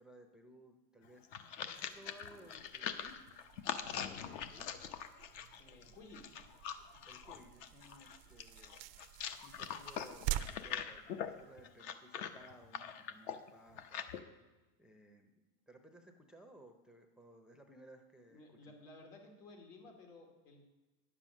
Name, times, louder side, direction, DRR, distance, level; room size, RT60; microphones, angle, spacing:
voice 1, 0.0-3.1 3.9-4.7 6.9-8.8 9.3-14.1 14.8-15.3 15.7-18.7, right 1 dB, ahead, 5 dB, 0.5 m, -59 dB
sound 1, 1.0-14.2, left 8 dB, 55° left, 0.9 m, -43 dB
sound 2, 1.7-11.8, right 14 dB, 50° right, 0.5 m, -47 dB
voice 2, 5.6-6.3 18.3-20.6, left 2 dB, 85° left, 2 dB, 2.8 m, -56 dB
9.8 x 7.5 x 6.2 m, 1.2 s
supercardioid pair, 130°, 44 cm